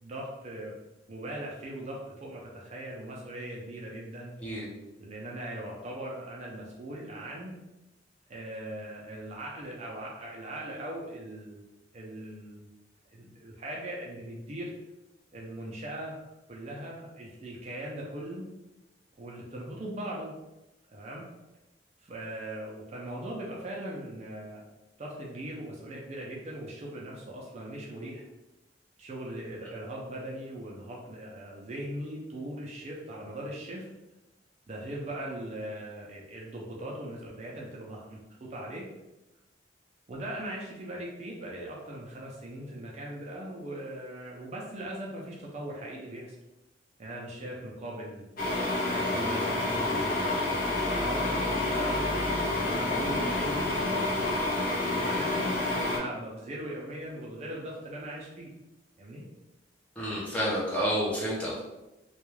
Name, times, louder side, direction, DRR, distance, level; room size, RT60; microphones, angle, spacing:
voice 1, 0.0-0.7 1.1-4.4 5.0-7.5 8.3-11.6 11.9-12.7 13.1-14.7 15.3-16.2 16.5-18.4 19.2-20.3 20.9-21.2 22.0-24.6 25.0-28.2 29.0-33.9 34.7-38.9 40.1-46.3 47.0-48.3 48.8-52.2 52.6-58.5 59.0-59.2, right 1 dB, 35° right, -3 dB, 0.4 m, -40 dB
sound 1, 48.4-56.0, left 2 dB, 50° left, 0.6 m, -28 dB
voice 2, 60.0-61.6, equal, 10° left, -7 dB, 0.6 m, -29 dB
2.3 x 2.2 x 3.0 m, 1.0 s
head